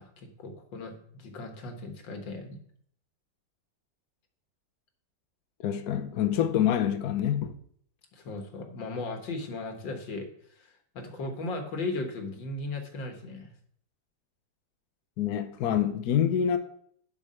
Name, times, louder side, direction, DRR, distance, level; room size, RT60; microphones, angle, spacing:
voice 1, 0.0-2.6 8.1-10.3 10.6-13.5, left 2 dB, 90° left, 2.2 m, -37 dB
voice 2, 5.6-7.5 15.2-16.6, left 9 dB, 65° left, 1.2 m, -26 dB
10.5 x 4.9 x 5.6 m
omnidirectional pair, 2.0 m